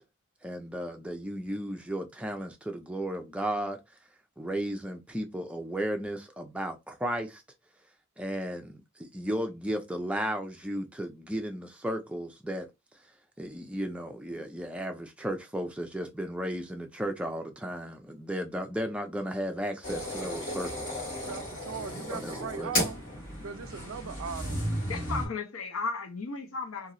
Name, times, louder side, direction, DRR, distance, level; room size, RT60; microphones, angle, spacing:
voice 1, 0.4-3.8 4.4-7.4 8.2-12.7 13.4-21.0 22.1-22.8, equal, 5° right, 0.4 m, -34 dB
sound 1, 19.8-25.3, equal, 40° left, 1.7 m, -34 dB
voice 2, 21.3-23.0 23.4-24.7, right 6 dB, 70° right, 0.4 m, -39 dB
voice 3, 24.9-26.9, left 4 dB, 80° left, 0.7 m, -35 dB
3.0 x 2.7 x 2.5 m
head